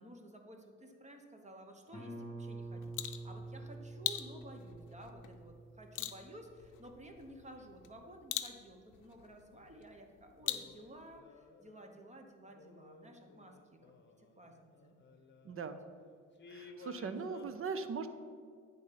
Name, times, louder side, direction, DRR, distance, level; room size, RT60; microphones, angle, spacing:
voice 1, 0.0-13.8 14.2-14.9 15.5-15.7, right 1 dB, 25° right, 4 dB, 1.0 m, -54 dB
Guitar, 1.9-7.3, right 2 dB, 15° left, 1.8 m, -48 dB
sound 1, 2.6-11.2, left 13 dB, 90° left, 0.6 m, -44 dB
sound 2, 9.5-9.8 10.4-12.1 12.5-15.8 16.4-17.4, left 3 dB, 35° left, 0.9 m, -57 dB
voice 2, 15.4-15.8 16.5-18.1, right 5 dB, 45° right, 10 dB, 0.7 m, -39 dB
9.7 x 3.8 x 5.8 m, 2.1 s
cardioid pair, 90°, 30 cm